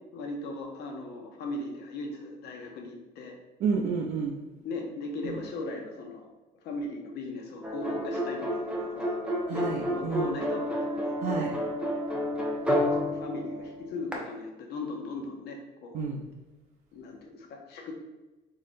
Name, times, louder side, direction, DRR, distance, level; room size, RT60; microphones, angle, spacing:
voice 1, 0.1-3.3 4.6-6.3 6.6-9.1 9.5-11.1 12.7-16.0 16.9-17.9, left 2 dB, 75° left, 2 dB, 0.7 m, -38 dB
voice 2, 3.6-4.4 5.2-5.4 9.5-10.3 11.2-11.5 15.9-16.2, right 5 dB, 65° right, -3 dB, 0.5 m, -30 dB
sound 1, 7.6-14.1, equal, 5° right, 0.7 m, -30 dB
3.6 x 3.1 x 2.6 m, 1.1 s
cardioid pair, 110°, 17 cm